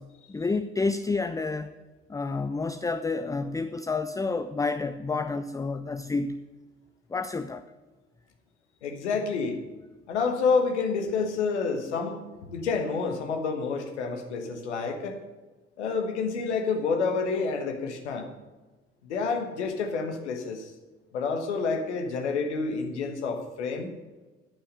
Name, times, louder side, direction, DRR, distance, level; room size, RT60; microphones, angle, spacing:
voice 1, 0.0-1.7 2.1-6.4 7.1-7.6, left 3 dB, 10° left, 9 dB, 0.5 m, -29 dB
voice 2, 8.8-9.6 10.1-12.2 12.5-15.2 15.8-18.3 19.0-20.7 21.1-23.9, left 4 dB, 80° left, 4 dB, 1.3 m, -28 dB
13.5 x 5.7 x 6.6 m, 1.2 s
figure-of-eight pair, 50°, 34 cm